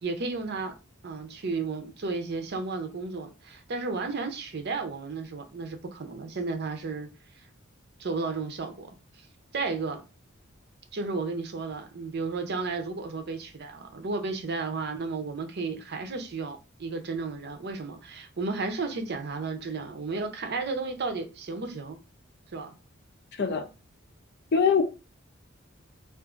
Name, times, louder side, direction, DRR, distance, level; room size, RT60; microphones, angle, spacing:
voice 1, 0.0-0.7 1.0-7.1 8.0-8.9 9.2-9.3 9.5-10.0 10.9-22.0 22.5-22.7, right 4 dB, 50° right, 0.6 m, -33 dB
voice 2, 24.5-24.8, left 6 dB, 55° left, 0.5 m, -22 dB
2.5 x 2.4 x 3.8 m
head